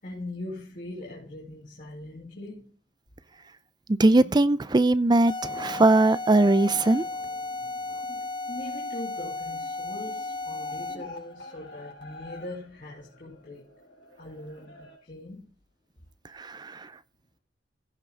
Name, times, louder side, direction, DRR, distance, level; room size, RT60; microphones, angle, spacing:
voice 1, 0.0-2.7 8.5-13.6 14.2-15.5, left 1 dB, 45° left, 3.1 m, -41 dB
voice 2, 4.0-7.0 16.4-16.8, right 2 dB, 20° right, 0.5 m, -20 dB
sound 1, 5.3-11.2, left 3 dB, 25° left, 0.8 m, -34 dB
sound 2, 5.9-15.0, left 2 dB, 70° left, 4.0 m, -48 dB
16.0 x 5.9 x 4.1 m
head